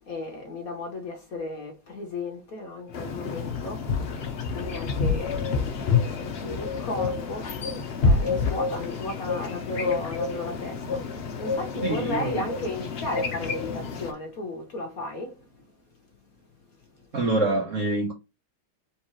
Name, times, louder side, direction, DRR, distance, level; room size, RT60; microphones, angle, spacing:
voice 1, 0.0-3.9 4.4-15.7 16.8-17.1, left 2 dB, 50° left, 1.3 m, -35 dB
sound 1, 2.9-14.1, left 4 dB, 65° left, 0.6 m, -28 dB
voice 2, 11.8-12.5 17.1-18.1, right 2 dB, 50° right, 1.0 m, -25 dB
4.4 x 3.7 x 3.0 m
omnidirectional pair, 2.3 m